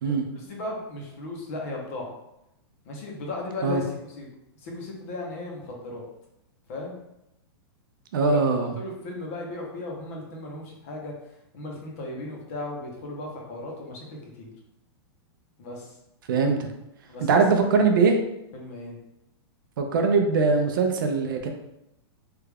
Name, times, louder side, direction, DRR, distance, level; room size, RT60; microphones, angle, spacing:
voice 1, 0.3-2.1 2.8-4.3 4.6-6.1 6.7-7.0 8.2-11.1 11.5-14.5 15.6-16.0 17.1-17.6 18.5-19.0, left 2 dB, 35° left, -1 dB, 0.7 m, -36 dB
voice 2, 8.1-8.7 16.3-16.7 17.2-18.2 19.8-21.5, right 4 dB, 50° right, 4 dB, 0.4 m, -21 dB
3.3 x 2.3 x 3.3 m, 0.85 s
supercardioid pair, 175°, 14 cm